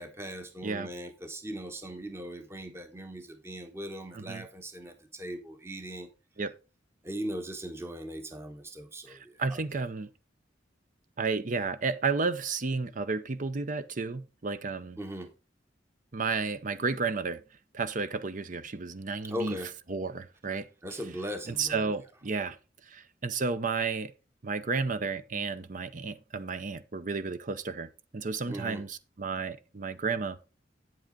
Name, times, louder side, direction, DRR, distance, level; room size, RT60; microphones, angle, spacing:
voice 1, 0.0-6.1 7.0-9.8 15.0-15.3 19.3-19.7 20.8-21.9 28.5-28.9, equal, 15° right, 1.0 m, -39 dB
voice 2, 4.1-4.4 6.4-6.5 9.1-10.1 11.2-15.0 16.1-17.4 17.7-19.6 19.9-20.7 21.5-22.6 22.9-24.1 24.4-30.4, right 4 dB, 45° right, 0.7 m, -32 dB
8.5 x 7.8 x 3.8 m
head